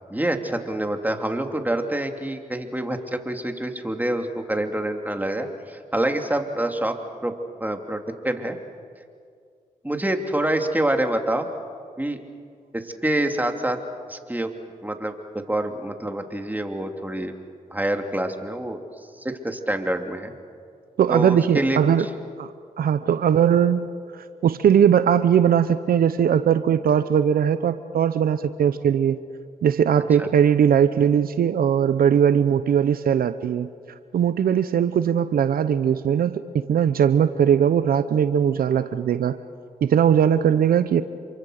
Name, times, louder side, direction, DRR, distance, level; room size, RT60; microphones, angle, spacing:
voice 1, 0.1-6.9 7.2-7.3 7.6-8.6 9.8-11.5 12.0-12.2 12.7-13.8 14.1-14.5 14.8-17.3 17.7-18.8 19.2-20.3 21.1-22.1 30.2-30.3, right 1 dB, 10° right, 4 dB, 3.1 m, -26 dB
voice 2, 21.0-22.1 22.4-22.5 22.8-23.9 24.2-29.2 29.6-33.7 34.1-39.4 39.8-41.0, right 8 dB, 75° right, 12 dB, 0.8 m, -19 dB
27.5 x 24.0 x 6.6 m, 2.2 s
supercardioid pair, 45°, 15 cm